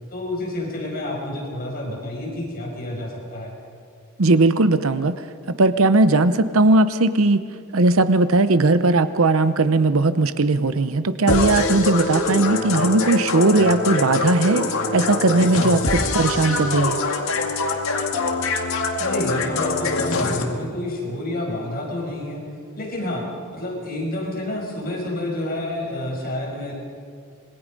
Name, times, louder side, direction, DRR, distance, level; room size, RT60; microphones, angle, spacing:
voice 1, 0.1-3.5 19.0-22.4 22.8-23.3 23.5-26.7, left 1 dB, 45° left, -1 dB, 5.8 m, -29 dB
voice 2, 4.2-5.2 5.6-7.4 7.7-17.0, right 2 dB, 75° right, 12 dB, 0.8 m, -18 dB
sound 1, 11.3-20.4, left 3 dB, 75° left, 2.1 m, -24 dB
26.0 x 22.0 x 5.3 m, 2.2 s
head